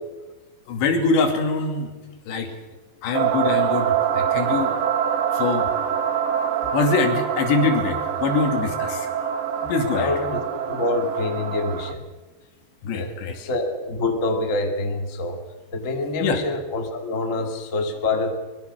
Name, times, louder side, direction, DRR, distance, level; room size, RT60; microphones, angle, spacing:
voice 1, 0.7-1.9 2.3-2.5 3.0-4.7 5.4-5.7 6.7-9.1 9.7-10.1 12.8-13.3 16.2-16.4, left 4 dB, 85° left, 5 dB, 4.7 m, -23 dB
sound 1, 3.1-11.9, right 8 dB, 90° right, 1.4 m, -25 dB
voice 2, 9.6-12.0 12.9-15.4 15.7-18.4, left 2 dB, 25° left, 4 dB, 1.9 m, -26 dB
23.0 x 22.5 x 6.3 m, 1.2 s
omnidirectional pair, 4.9 m